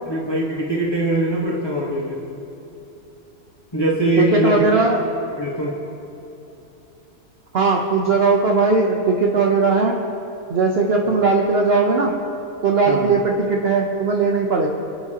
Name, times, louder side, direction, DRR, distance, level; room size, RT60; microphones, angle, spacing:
voice 1, 0.1-2.2 3.7-4.6 5.4-5.8 12.9-13.1, right 1 dB, 20° left, -5 dB, 1.3 m, -22 dB
voice 2, 4.2-5.0 7.5-9.9 10.5-12.1 12.6-14.7, right 4 dB, 50° right, 0 dB, 1.0 m, -18 dB
26.5 x 9.0 x 2.9 m, 3.0 s
omnidirectional pair, 1.5 m